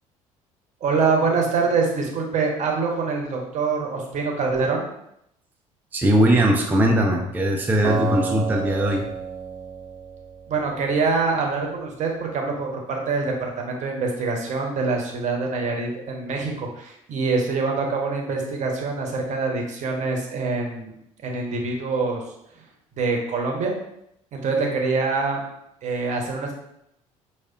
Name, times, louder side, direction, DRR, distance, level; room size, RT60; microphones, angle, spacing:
voice 1, 0.8-4.8 10.5-20.9 21.2-22.2 23.0-23.7 24.3-25.4 25.8-26.6, right 4 dB, 40° right, 1 dB, 0.8 m, -25 dB
voice 2, 5.9-9.1, right 1 dB, 10° right, 1 dB, 0.4 m, -20 dB
Acoustic guitar, 7.8-11.0, right 5 dB, 75° right, 0.6 m, -30 dB
4.7 x 2.3 x 2.4 m, 0.77 s
figure-of-eight pair, 55°, 18 cm